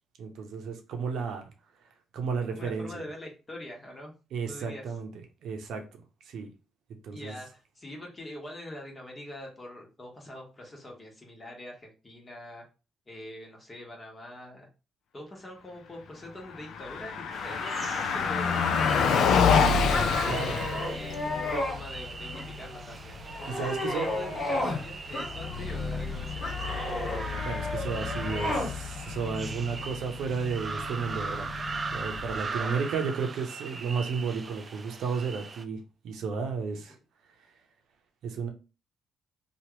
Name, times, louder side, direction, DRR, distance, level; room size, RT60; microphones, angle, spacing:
voice 1, 0.2-1.4 2.1-3.1 4.3-5.1 5.4-6.5 7.0-7.4 20.2-20.6 23.5-24.4 27.4-31.5 31.9-35.8 36.0-37.0 38.2-38.5, right 5 dB, 75° right, 0.7 m, -33 dB
voice 2, 2.5-4.1 4.5-4.8 7.1-12.6 13.1-14.7 15.1-19.7 20.3-23.1 23.8-27.1 32.3-32.8, left 1 dB, 30° left, 1.2 m, -44 dB
Car passing by, 16.4-32.6, left 6 dB, 75° left, 0.4 m, -30 dB
sound 1, 17.3-35.6, right 4 dB, 40° right, 0.3 m, -40 dB
sound 2, 19.9-21.8 22.3-22.8 23.2-24.8 25.1-25.8 26.4-28.7, left 1 dB, 55° left, 1.5 m, -32 dB
2.9 x 2.4 x 3.1 m
cardioid pair, 90°, 0 cm